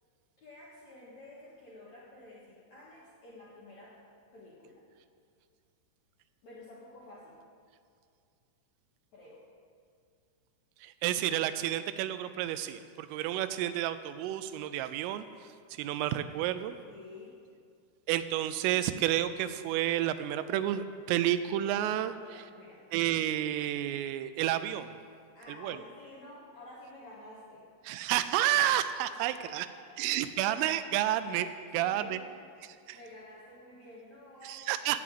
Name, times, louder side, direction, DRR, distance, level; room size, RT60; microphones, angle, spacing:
voice 1, 0.4-4.0 4.3-4.8 6.4-7.4 9.1-9.4 16.8-17.4 22.1-22.8 25.3-27.7 29.2-30.1 31.7-35.0, left 1 dB, 60° left, -6 dB, 1.9 m, -51 dB
voice 2, 10.8-15.3 15.7-16.8 18.1-22.4 22.9-24.9 25.6-25.8 27.9-29.7 30.0-31.5 31.7-32.2 32.6-33.0 34.5-35.0, right 12 dB, 85° right, 12 dB, 3.2 m, -30 dB
16.0 x 6.1 x 8.5 m, 2.3 s
omnidirectional pair, 5.8 m